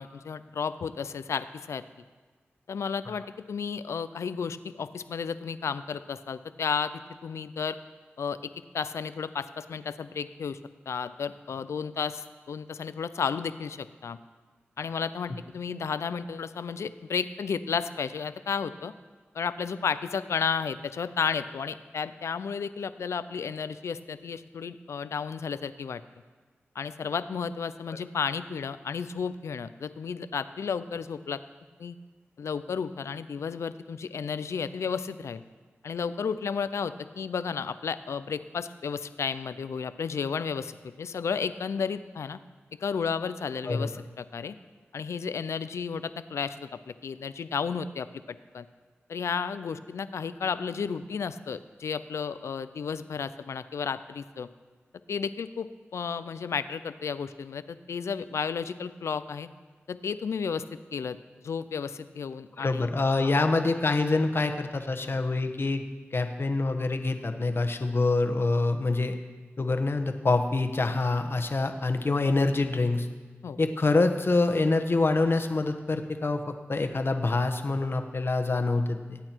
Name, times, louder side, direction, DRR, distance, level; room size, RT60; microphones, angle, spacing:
voice 1, 0.0-1.8 2.7-6.9 7.2-7.8 8.2-8.4 8.7-10.6 10.9-14.2 14.8-18.9 19.3-26.0 26.7-31.4 31.8-32.0 32.4-35.4 35.8-42.4 42.8-44.5 44.9-48.1 48.5-48.7 49.1-54.5 55.1-55.7 55.9-59.5 59.9-60.6 60.9-61.2 61.4-62.9 63.2-63.3 73.4-73.6, left 6 dB, 90° left, 13 dB, 0.5 m, -32 dB
voice 2, 62.6-65.8 66.1-69.1 69.6-73.1 73.6-79.2, left 3 dB, 55° left, 6 dB, 1.2 m, -26 dB
19.0 x 8.7 x 4.6 m, 1.4 s
cardioid pair, 40°, 5 cm